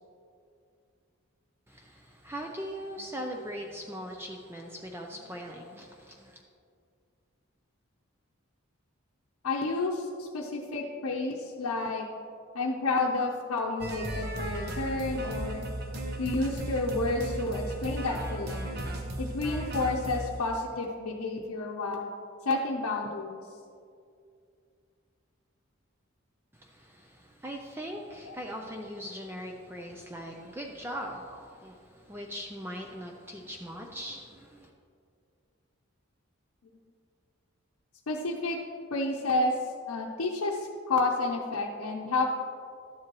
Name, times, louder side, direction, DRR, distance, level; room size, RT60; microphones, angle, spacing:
voice 1, 2.2-5.9 6.2-6.3 27.4-31.3 31.6-31.7 32.1-34.7, equal, 10° right, 1 dB, 0.4 m, -39 dB
voice 2, 9.4-12.1 12.5-15.7 16.2-18.8 19.2-22.1 22.5-23.4 28.3-28.4 38.1-38.6 38.9-39.5 39.9-42.3, left 2 dB, 85° left, -2 dB, 0.7 m, -30 dB
sound 1, 13.8-20.4, right 1 dB, 50° right, 1.0 m, -35 dB
12.0 x 7.6 x 3.0 m, 2.4 s
head